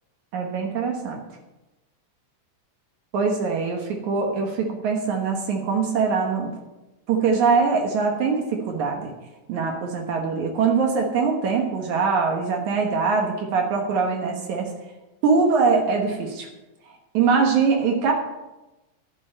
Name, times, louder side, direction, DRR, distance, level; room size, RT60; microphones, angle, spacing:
voice 1, 0.3-1.2 3.1-6.5 7.1-9.1 9.5-14.7 15.2-16.5 17.1-18.1, right 5 dB, 70° right, 2 dB, 2.7 m, -22 dB
11.0 x 7.4 x 7.4 m, 1.0 s
omnidirectional pair, 3.6 m